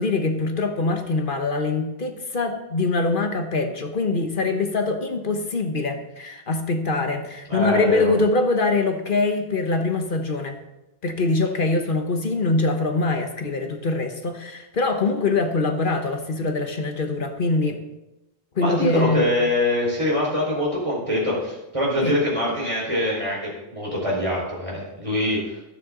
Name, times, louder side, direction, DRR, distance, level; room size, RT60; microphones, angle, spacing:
voice 1, 0.0-10.6 11.0-17.8 18.6-19.3 22.0-22.1, left 3 dB, 50° left, 6 dB, 1.3 m, -23 dB
voice 2, 7.5-8.1 18.6-25.4, left 1 dB, 30° right, -4 dB, 4.8 m, -24 dB
13.5 x 11.5 x 3.8 m, 0.99 s
omnidirectional pair, 1.1 m